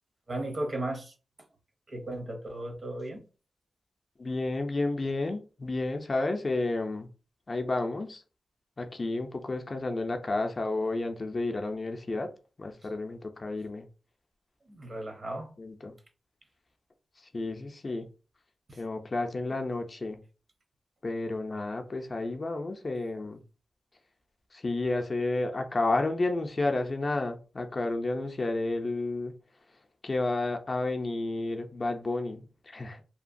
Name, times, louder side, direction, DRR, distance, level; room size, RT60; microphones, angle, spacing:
voice 1, 0.3-1.1 1.9-3.2 14.7-15.5 18.7-18.8, right 1 dB, 45° right, 0.8 m, -35 dB
voice 2, 4.2-7.1 7.5-8.2 8.8-12.3 12.6-13.9 15.6-15.9 17.3-18.1 18.8-20.2 21.0-23.4 24.5-29.3 30.0-33.0, left 2 dB, 40° left, 0.4 m, -31 dB
2.8 x 2.2 x 2.5 m
wide cardioid pair, 85°, 0 cm